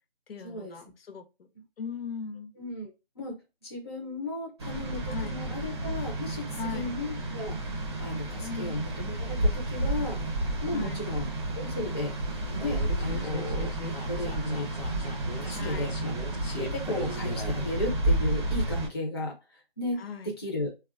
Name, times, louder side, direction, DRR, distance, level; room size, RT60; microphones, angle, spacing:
voice 1, 0.3-1.3 1.8-2.5 5.1-5.4 6.6-6.9 8.4-8.8 10.7-11.1 13.2-13.5 15.5-15.9 20.0-20.3, left 5 dB, 70° left, 0.6 m, -39 dB
voice 2, 2.6-2.9 3.2-3.3 3.6-7.6 8.0-10.2 10.6-11.3 11.6-12.1 12.5-13.7 14.1-14.7 15.4-16.1 16.5-20.7, left 1 dB, 25° left, 0.4 m, -34 dB
sound 1, 4.6-18.9, right 1 dB, 25° right, 0.6 m, -31 dB
sound 2, 12.6-17.7, left 2 dB, 85° left, 1.0 m, -39 dB
3.1 x 2.2 x 2.3 m
hypercardioid pair, 160°, 30 cm